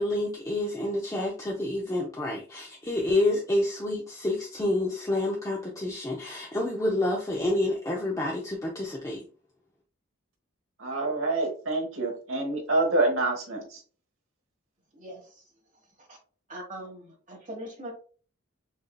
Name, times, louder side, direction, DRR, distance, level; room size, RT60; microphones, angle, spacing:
voice 1, 0.0-9.2, left 1 dB, 15° left, 0.5 m, -28 dB
voice 2, 10.8-13.8, right 2 dB, 70° right, 1.3 m, -27 dB
voice 3, 14.9-15.4 16.0-16.2 16.5-17.9, right 1 dB, 35° right, 1.2 m, -41 dB
6.3 x 2.7 x 2.2 m
head